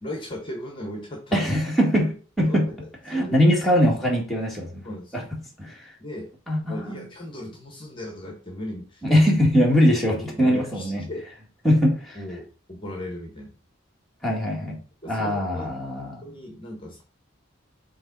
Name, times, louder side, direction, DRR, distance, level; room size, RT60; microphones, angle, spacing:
voice 1, 0.0-1.5 2.5-2.8 3.1-3.6 4.8-5.3 6.0-6.3 6.7-9.0 10.2-11.3 12.1-13.6 15.0-15.7 16.2-17.0, left 1 dB, 25° left, 1.2 m, -37 dB
voice 2, 1.3-2.7 3.1-4.8 5.1-5.2 5.6-5.8 6.5-7.0 9.0-11.0 11.6-12.2 14.2-14.8 15.1-16.2, equal, ahead, 1.8 m, -21 dB
6.9 x 3.6 x 4.0 m
head